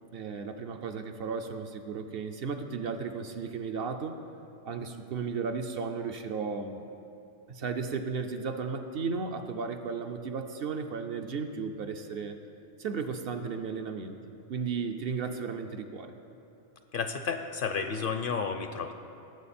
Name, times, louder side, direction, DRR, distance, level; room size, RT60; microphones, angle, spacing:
voice 1, 0.1-4.2 4.6-6.9 7.5-12.4 12.8-16.1, right 5 dB, 60° right, 6 dB, 0.8 m, -35 dB
voice 2, 16.9-18.9, left 5 dB, 55° left, 7 dB, 0.7 m, -32 dB
17.5 x 7.4 x 4.3 m, 2.8 s
omnidirectional pair, 1.2 m